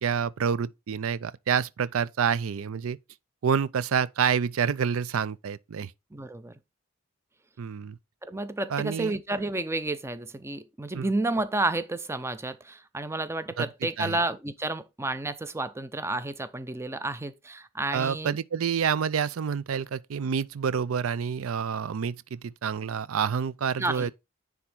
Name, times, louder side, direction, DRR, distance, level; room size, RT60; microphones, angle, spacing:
voice 1, 0.0-3.0 3.4-5.9 7.6-8.0 8.7-9.2 10.9-11.1 13.6-13.7 14.0-14.2 17.9-24.1, right 7 dB, 85° right, 0.5 m, -28 dB
voice 2, 6.1-6.6 8.2-18.4 23.8-24.1, right 2 dB, 15° right, 0.6 m, -31 dB
9.8 x 3.5 x 4.4 m
head